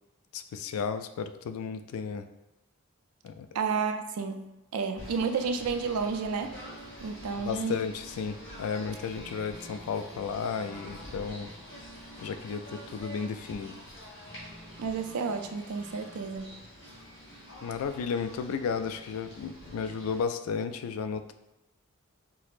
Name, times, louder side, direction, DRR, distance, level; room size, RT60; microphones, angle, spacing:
voice 1, 0.3-2.3 3.2-3.5 7.4-11.5 12.2-13.7 17.6-21.3, left 6 dB, 80° left, 9 dB, 0.3 m, -33 dB
voice 2, 3.5-6.6 7.0-7.8 14.8-16.5, right 5 dB, 85° right, 6 dB, 0.4 m, -31 dB
Singing / Bird, 5.0-20.2, equal, 55° left, 1.5 m, -46 dB
6.0 x 2.0 x 2.4 m, 0.96 s
head